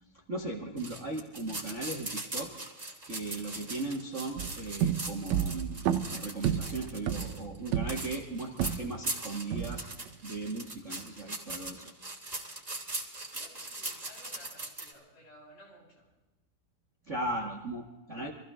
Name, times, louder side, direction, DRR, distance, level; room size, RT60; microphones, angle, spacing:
voice 1, 0.3-2.5 3.0-5.8 6.1-9.9 10.2-11.9 17.1-18.3, right 2 dB, 35° right, 0 dB, 1.2 m, -37 dB
sound 1, 0.8-14.9, right 2 dB, 10° right, 2.4 m, -40 dB
voice 2, 3.4-3.7 13.3-16.1, equal, 85° left, -7 dB, 9.4 m, -56 dB
sound 2, 4.4-9.1 9.5-10.1, right 9 dB, 70° right, 1.7 m, -32 dB
25.5 x 15.5 x 3.7 m, 1.1 s
omnidirectional pair, 4.1 m